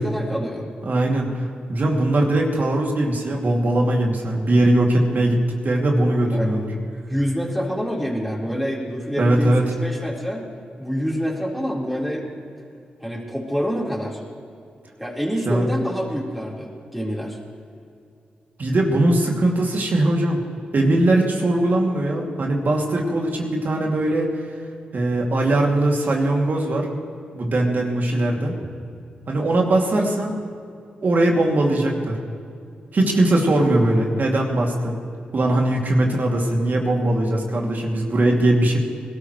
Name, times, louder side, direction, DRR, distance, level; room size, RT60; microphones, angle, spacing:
voice 1, 0.0-0.7 6.3-6.5 7.1-10.4 10.8-12.3 13.0-14.2 15.0-17.4, equal, ahead, -4 dB, 4.3 m, -26 dB
voice 2, 0.8-1.4 1.7-6.7 9.2-9.7 15.5-15.7 18.6-20.4 20.7-24.3 24.9-26.9 27.3-28.6 29.3-30.3 31.0-32.2 32.9-35.0 35.3-38.8, right 1 dB, 60° right, 0 dB, 2.7 m, -20 dB
21.0 x 13.0 x 3.2 m, 2.4 s
supercardioid pair, 40°, 4 cm